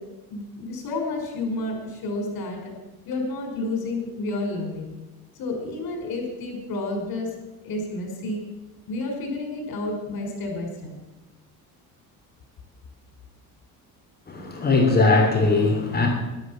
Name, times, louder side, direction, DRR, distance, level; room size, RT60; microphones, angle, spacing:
voice 1, 0.3-2.7 3.1-4.9 5.4-7.3 7.6-8.4 8.9-10.9, left 2 dB, 75° left, 2 dB, 5.4 m, -30 dB
voice 2, 14.3-16.1, left 3 dB, 25° left, 1 dB, 3.1 m, -20 dB
13.0 x 12.0 x 7.5 m, 1.1 s
cardioid pair, 125°, 36 cm